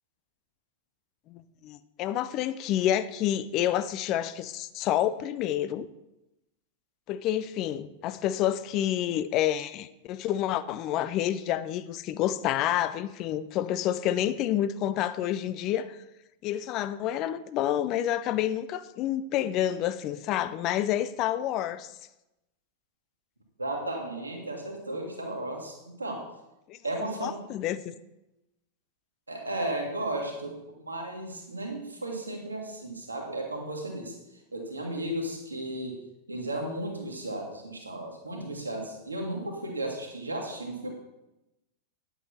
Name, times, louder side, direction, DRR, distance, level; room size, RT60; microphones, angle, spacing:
voice 1, 1.3-5.9 7.1-16.0 16.4-21.9 26.7-26.8 27.2-27.9, left 11 dB, 40° left, 14 dB, 0.4 m, -29 dB
voice 2, 23.6-26.2 26.8-27.4 29.3-30.5 30.8-34.2 34.5-36.0 36.3-40.9, right 1 dB, 80° right, 0 dB, 1.9 m, -34 dB
9.7 x 8.1 x 4.2 m, 0.94 s
figure-of-eight pair, 90°, 0 cm